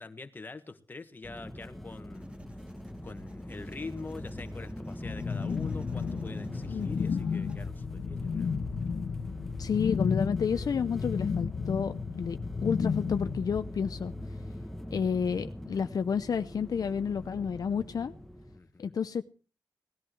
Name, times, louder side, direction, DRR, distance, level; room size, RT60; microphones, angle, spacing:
voice 1, 0.0-2.4 3.0-8.6 18.5-18.9, left 3 dB, 25° left, 8 dB, 1.6 m, -44 dB
sound 1, 1.2-18.6, left 1 dB, 5° left, 1.0 m, -42 dB
Writing, 2.1-7.7, right 1 dB, 15° right, 2.4 m, -53 dB
sound 2, 5.0-13.6, left 6 dB, 75° left, 1.2 m, -33 dB
voice 2, 6.7-7.2 9.6-14.1 14.9-18.1 18.8-19.3, left 6 dB, 55° left, 10 dB, 0.7 m, -31 dB
18.5 x 14.0 x 4.7 m, 0.37 s
wide cardioid pair, 160°, 7 cm